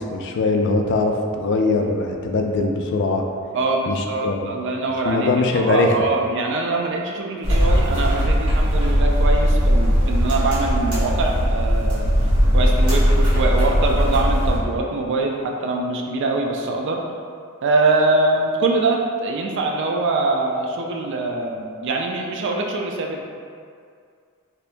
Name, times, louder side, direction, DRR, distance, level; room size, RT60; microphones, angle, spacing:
voice 1, 0.0-3.2 3.9-4.5 5.1-5.9, left 3 dB, 55° left, 3 dB, 0.3 m, -21 dB
voice 2, 3.5-5.3 5.5-12.1 12.5-17.0 17.6-23.2, right 2 dB, 55° right, 1 dB, 0.4 m, -23 dB
sound 1, 7.4-14.6, equal, 75° right, 1.4 m, -18 dB
2.8 x 2.6 x 3.3 m, 2.2 s
head